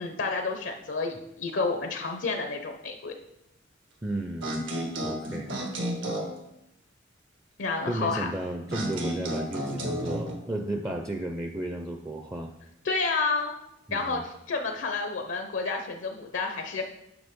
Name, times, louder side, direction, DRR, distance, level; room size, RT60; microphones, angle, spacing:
voice 1, 0.0-3.1 7.6-8.3 12.8-13.5 13.9-16.8, left 4 dB, 75° left, 4 dB, 0.7 m, -30 dB
voice 2, 4.0-4.6 5.0-5.5 7.9-12.5 13.9-14.2, right 1 dB, 15° right, 4 dB, 0.4 m, -33 dB
sound 1, 4.4-6.4 8.7-10.3, equal, 80° right, 1.3 m, -32 dB
7.8 x 5.7 x 3.6 m, 0.84 s
head